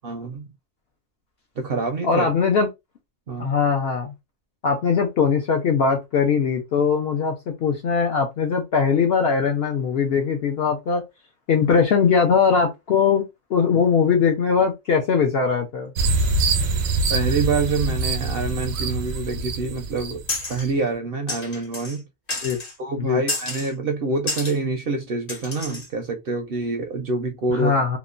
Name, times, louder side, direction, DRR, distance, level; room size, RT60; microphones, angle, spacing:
voice 1, 0.0-0.5 1.6-2.3 3.3-3.5 17.1-20.2 20.5-22.0 22.8-27.8, right 3 dB, 60° right, 0.6 m, -26 dB
voice 2, 2.0-2.7 3.4-4.1 4.6-11.0 11.5-13.2 13.5-15.9 22.4-22.6 23.0-23.2 27.5-28.0, left 6 dB, 65° left, 0.6 m, -20 dB
sound 1, 16.0-20.7, right 3 dB, 90° right, 1.1 m, -24 dB
sound 2, 20.3-20.7 21.3-22.0 22.3-22.7 23.3-23.7 24.3-24.6 25.3-25.9, left 2 dB, 45° left, 1.0 m, -30 dB
2.9 x 2.1 x 2.4 m
omnidirectional pair, 1.4 m